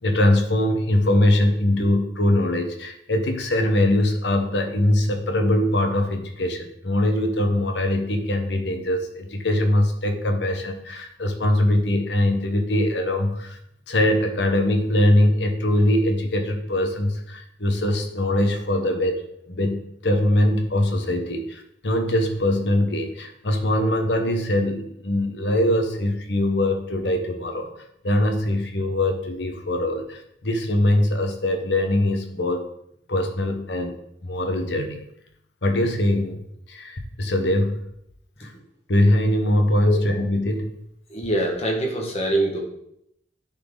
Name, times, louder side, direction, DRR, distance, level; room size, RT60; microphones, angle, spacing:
voice 1, 0.0-13.6 13.9-19.2 19.5-27.7 28.0-32.6 33.1-34.0 34.2-35.1 35.6-36.4 36.7-37.8 38.4-38.5 38.9-40.7, left 1 dB, 70° left, 5 dB, 1.0 m, -22 dB
voice 2, 41.1-42.6, right 1 dB, 35° left, 0 dB, 1.5 m, -24 dB
10.0 x 4.1 x 3.8 m, 0.75 s
head